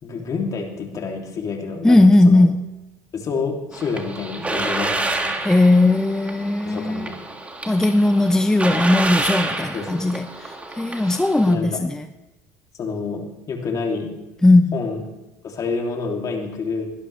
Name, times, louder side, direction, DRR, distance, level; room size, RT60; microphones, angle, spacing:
voice 1, 0.0-2.5 3.1-5.4 6.7-7.2 9.6-10.0 11.5-11.9 12.8-14.1 14.7-15.1 15.4-16.9, left 4 dB, 40° left, 1 dB, 2.9 m, -28 dB
voice 2, 1.8-2.6 5.4-7.1 7.7-12.0 14.4-14.8, left 2 dB, 5° left, 10 dB, 0.5 m, -17 dB
sound 1, 3.7-11.5, right 2 dB, 15° right, 2.1 m, -28 dB
21.0 x 12.0 x 3.3 m, 1.0 s
supercardioid pair, 90°, 9 cm